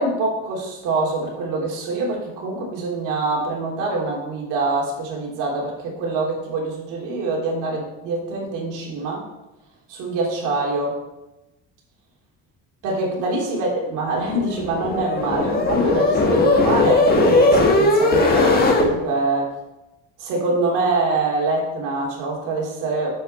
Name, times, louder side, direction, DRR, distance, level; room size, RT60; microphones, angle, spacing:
voice 1, 0.0-9.2 9.9-11.0 12.8-19.5 20.2-23.2, right 3 dB, 75° right, -2 dB, 3.0 m, -24 dB
sound 1, 14.2-18.9, left 2 dB, 30° left, 1.4 m, -18 dB
7.8 x 6.0 x 5.6 m, 0.98 s
cardioid pair, 155°, 31 cm